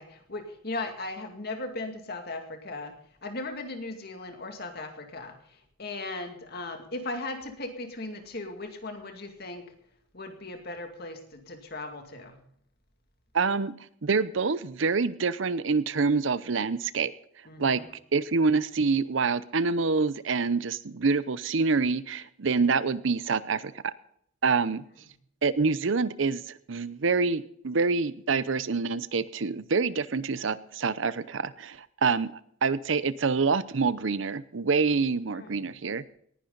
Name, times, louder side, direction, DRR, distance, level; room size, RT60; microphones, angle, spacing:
voice 1, 0.0-9.7 10.1-12.4 17.5-17.9 35.3-35.7, left 2 dB, 50° left, 5 dB, 2.3 m, -38 dB
voice 2, 13.3-13.7 14.0-17.1 17.6-17.8 18.1-23.9 24.4-24.8 25.4-32.3 32.6-36.0, right 4 dB, 70° right, 16 dB, 0.7 m, -26 dB
19.0 x 11.0 x 3.9 m, 0.67 s
head